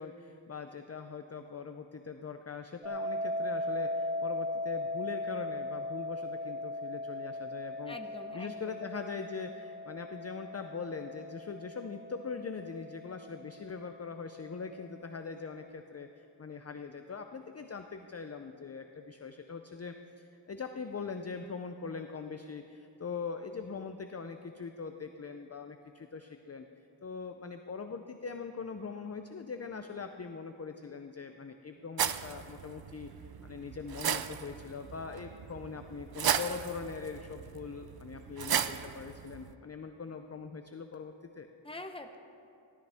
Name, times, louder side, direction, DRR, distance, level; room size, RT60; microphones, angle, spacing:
voice 1, 0.0-8.0 8.3-26.7 27.0-41.5, left 5 dB, 30° left, 6 dB, 0.5 m, -42 dB
sound 1, 2.8-13.8, left 1 dB, 10° right, 1.2 m, -38 dB
voice 2, 7.9-8.7 41.6-42.2, left 2 dB, 10° left, 5 dB, 0.9 m, -44 dB
sound 2, 32.0-39.5, right 8 dB, 50° right, 0.5 m, -36 dB
16.0 x 13.0 x 3.5 m, 2.6 s
wide cardioid pair, 70°, 48 cm